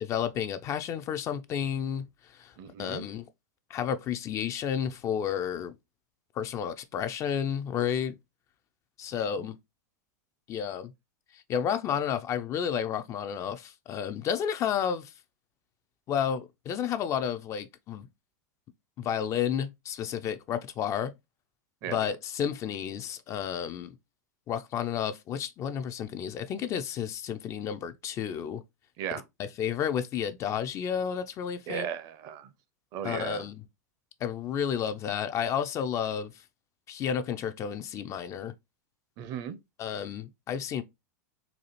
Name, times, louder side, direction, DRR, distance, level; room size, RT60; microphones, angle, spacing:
voice 1, 0.0-2.1 2.4-2.5 2.8-3.3 3.7-5.7 6.4-8.2 9.0-9.6 10.5-10.9 11.3-15.1 16.1-18.1 19.0-21.1 21.9-24.0 24.5-28.6 29.4-31.9 33.0-33.6 34.2-36.3 36.9-38.5 39.8-40.8, left 8 dB, 35° left, 0.3 m, -31 dB
voice 2, 2.6-3.1 9.4-9.5 21.8-22.0 29.0-29.2 31.7-32.5 32.9-33.5 39.2-39.6, right 9 dB, 45° right, 0.5 m, -36 dB
4.0 x 2.4 x 2.9 m
hypercardioid pair, 95°, 9 cm